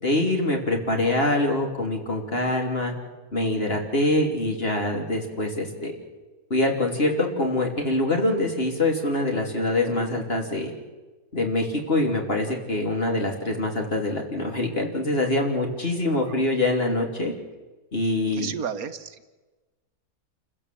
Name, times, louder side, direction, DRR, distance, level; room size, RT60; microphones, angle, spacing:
voice 1, 0.0-2.9 3.3-5.9 6.5-10.7 11.3-17.3 17.9-18.5, left 2 dB, 40° left, 2 dB, 3.2 m, -24 dB
voice 2, 18.3-19.3, right 7 dB, 70° right, 10 dB, 1.4 m, -33 dB
28.0 x 15.0 x 7.6 m, 1.2 s
omnidirectional pair, 1.6 m